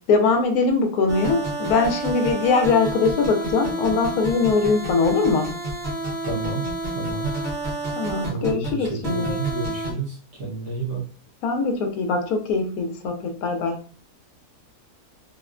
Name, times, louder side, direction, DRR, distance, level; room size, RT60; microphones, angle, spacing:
voice 1, 0.1-5.5 8.0-9.4 11.4-13.8, left 4 dB, 75° left, 4 dB, 1.0 m, -22 dB
sound 1, 1.1-9.9, right 2 dB, 40° right, 0.8 m, -29 dB
voice 2, 6.3-6.6 6.9-7.3 8.2-11.0, right 3 dB, 60° right, -2 dB, 1.1 m, -30 dB
3.5 x 2.1 x 2.4 m, 0.40 s
omnidirectional pair, 1.6 m